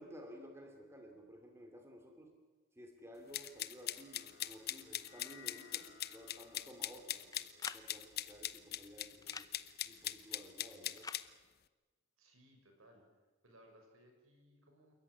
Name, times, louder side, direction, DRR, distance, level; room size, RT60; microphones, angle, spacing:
voice 1, 0.0-2.4 2.7-9.5 9.8-11.1, equal, 10° right, 3 dB, 2.6 m, -55 dB
sound 1, 3.3-9.6, left 6 dB, 65° left, 5.6 m, -63 dB
sound 2, 3.3-11.2, left 12 dB, 45° left, 0.8 m, -41 dB
sound 3, 7.3-7.9 9.2-9.5 11.0-11.2, left 4 dB, 15° left, 0.6 m, -46 dB
voice 2, 12.2-13.0 13.4-14.9, equal, 75° right, 3 dB, 6.1 m, -63 dB
28.0 x 14.5 x 9.8 m, 1.3 s
head